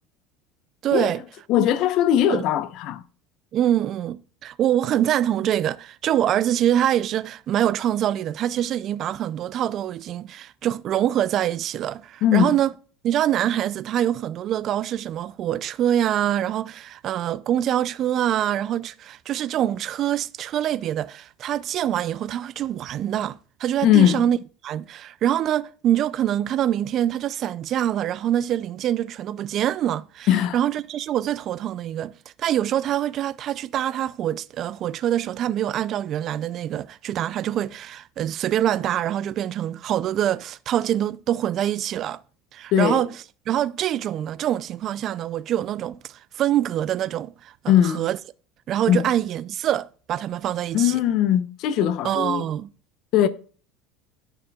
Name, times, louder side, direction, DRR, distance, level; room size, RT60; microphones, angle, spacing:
voice 1, 0.8-1.2 1.6-1.7 2.3-2.5 3.5-12.7 13.0-24.4 24.6-32.1 32.4-42.2 42.5-43.1 43.5-47.5 47.8-48.2 48.7-51.0 52.0-52.7, right 11 dB, 40° right, 0.3 m, -25 dB
voice 2, 1.5-3.0 12.2-12.5 23.8-24.3 30.3-30.6 42.7-43.0 47.7-48.1 48.9-49.0 50.7-52.4 53.1-53.3, left 11 dB, 55° left, 0.7 m, -20 dB
13.5 x 5.9 x 2.3 m
cardioid pair, 135°, 0 cm